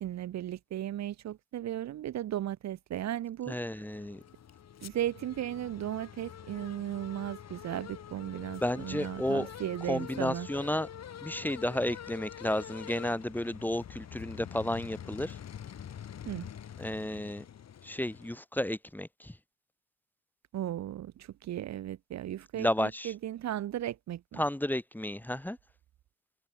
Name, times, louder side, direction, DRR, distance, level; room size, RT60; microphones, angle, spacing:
voice 1, 0.0-3.6 4.8-10.5 16.2-16.5 20.5-24.4, right 12 dB, 65° right, 1.0 m, -36 dB
voice 2, 3.5-4.2 8.6-9.5 9.9-10.9 11.2-15.4 16.8-17.4 17.8-19.3 22.6-23.1 24.4-25.6, left 1 dB, 5° left, 1.5 m, -32 dB
sound 1, 3.8-18.4, left 9 dB, 60° left, 4.2 m, -46 dB
cardioid pair, 90°, 30 cm